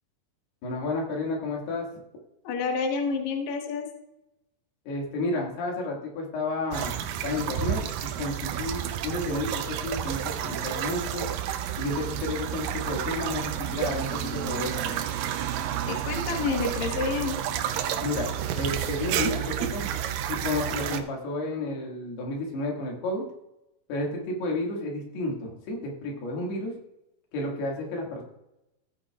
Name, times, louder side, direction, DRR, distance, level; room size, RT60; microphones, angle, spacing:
voice 1, 0.6-1.9 4.9-7.0 7.2-11.3 11.8-15.0 18.0-18.3 18.6-19.9 20.3-23.2 23.9-26.7 27.3-28.2, left 2 dB, 85° left, -1 dB, 4.1 m, -31 dB
voice 2, 2.4-3.9 15.9-17.4, left 5 dB, 60° left, 3 dB, 2.1 m, -29 dB
sound 1, 6.7-21.0, right 10 dB, 80° right, 2.1 m, -30 dB
15.0 x 8.9 x 2.4 m, 0.86 s
omnidirectional pair, 4.5 m